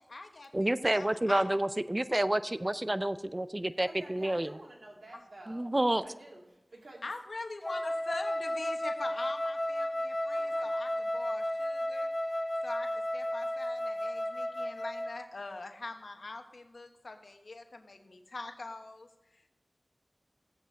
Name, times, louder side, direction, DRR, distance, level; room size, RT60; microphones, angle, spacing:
voice 1, 0.0-1.4 7.0-12.1 12.6-12.9 13.1-19.1 19.3-19.5, left 3 dB, 80° left, 5 dB, 1.1 m, -43 dB
voice 2, 0.5-4.5 5.5-6.1, right 1 dB, 30° right, 13 dB, 0.5 m, -29 dB
voice 3, 3.9-5.8 6.0-7.1 10.3-11.1, right 1 dB, 85° right, -1 dB, 2.3 m, -51 dB
Wind instrument woodwind instrument, 7.6-15.3, left 1 dB, 35° left, 0.7 m, -33 dB
15.0 x 8.3 x 4.0 m, 1.0 s
wide cardioid pair, 45°, 0 cm